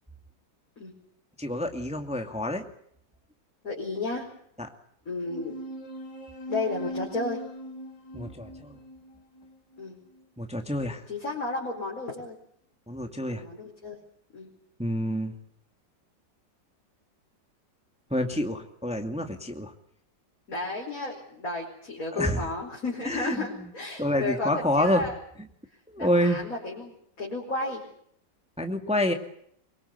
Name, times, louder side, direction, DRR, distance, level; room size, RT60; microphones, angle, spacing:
voice 1, 1.4-2.7 8.1-8.8 10.4-11.0 12.9-13.4 14.8-15.3 18.1-19.7 22.1-22.5 23.1-23.5 24.0-25.1 25.9-26.4 28.6-29.1, left 1 dB, 5° right, 5 dB, 2.1 m, -27 dB
voice 2, 3.6-4.3 5.1-5.5 6.5-7.4 9.8-10.0 11.1-12.4 13.3-14.0 14.3-14.5 20.5-25.2 26.0-26.9 27.2-27.8, left 2 dB, 50° left, -3 dB, 5.2 m, -33 dB
sound 1, 5.3-10.2, equal, 80° left, 3.1 m, -40 dB
24.5 x 23.0 x 8.2 m, 0.66 s
omnidirectional pair, 2.0 m